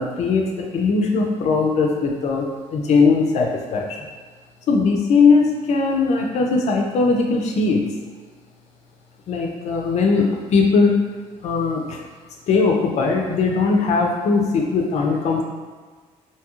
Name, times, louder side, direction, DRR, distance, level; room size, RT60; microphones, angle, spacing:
voice 1, 0.0-4.0 4.7-7.8 9.3-10.9 11.4-12.0 12.5-15.4, left 4 dB, 60° left, 1 dB, 0.5 m, -19 dB
2.8 x 2.3 x 3.0 m, 1.5 s
cardioid pair, 140°, 13 cm